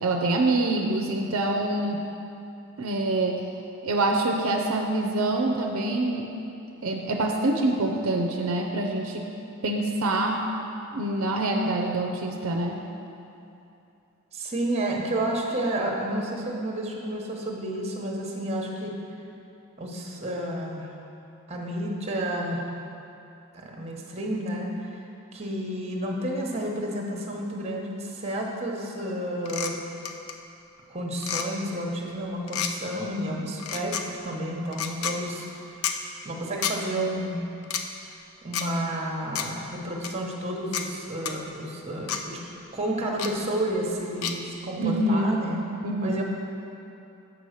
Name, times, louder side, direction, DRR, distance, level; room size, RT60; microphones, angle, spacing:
voice 1, 0.0-2.0 2.8-3.4 3.8-6.3 6.8-9.3 9.6-10.4 10.9-12.8 44.8-45.4 45.8-46.2, right 2 dB, 70° right, 2 dB, 0.6 m, -25 dB
voice 2, 14.3-18.9 19.8-20.9 21.5-22.6 23.5-25.0 25.3-29.8 30.9-35.5 36.2-37.4 38.4-42.4 42.7-45.6 46.0-46.2, right 1 dB, 30° right, 0 dB, 1.0 m, -31 dB
sound 1, 29.4-29.7 30.0-30.3 31.2-31.5 32.5-32.7 33.6-34.0 34.7-35.1 35.8-36.0 36.6-36.8 37.6-37.8 38.5-38.7 39.3-39.5 40.0-40.1 40.7-40.8 41.2-41.3 42.1-42.2 43.2-43.3 44.2-44.3, left 8 dB, 75° left, 0.5 m, -29 dB
7.2 x 5.5 x 6.4 m, 2.8 s
head